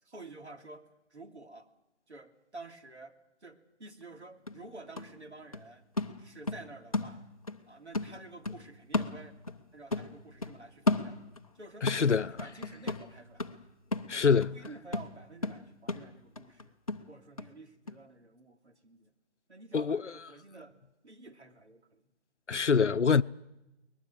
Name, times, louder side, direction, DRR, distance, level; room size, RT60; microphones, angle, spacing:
voice 1, 0.0-1.7 2.1-5.9 6.2-7.2 7.7-9.3 9.7-11.2 11.5-12.1 12.4-13.6 14.1-16.8 17.1-19.1 19.5-20.7 21.0-22.1, right 2 dB, 75° right, 3.0 m, -50 dB
sound 1, 4.0-4.1 4.5-7.6 7.9-9.7 9.9-11.5 11.9-17.5 17.9-18.0, left 2 dB, 30° left, 1.0 m, -35 dB
voice 2, 11.8-12.3 14.1-14.5 19.7-20.0 22.5-23.2, left 5 dB, 85° left, 0.8 m, -25 dB
22.5 x 20.5 x 7.7 m
figure-of-eight pair, 165°, 35 cm